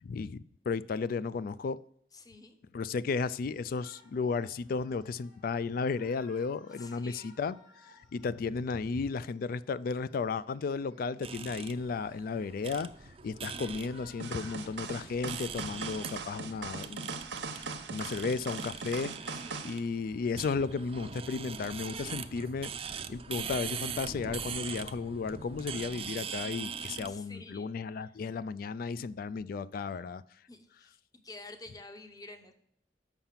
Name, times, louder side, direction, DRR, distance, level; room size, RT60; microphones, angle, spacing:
voice 1, 0.0-1.8 2.7-7.6 7.8-12.9 13.2-17.1 17.5-30.2, left 4 dB, 55° left, 0.3 m, -34 dB
voice 2, 2.1-2.6 6.7-7.3 19.3-20.1 27.1-28.1 29.8-29.9 30.5-32.5, left 2 dB, 20° left, 0.8 m, -50 dB
Shout, 3.5-15.6, left 2 dB, 85° left, 3.0 m, -61 dB
sound 1, 11.2-27.2, right 7 dB, 35° right, 0.4 m, -42 dB
sound 2, 14.2-19.8, right 4 dB, 85° right, 0.9 m, -40 dB
7.1 x 5.7 x 5.7 m
head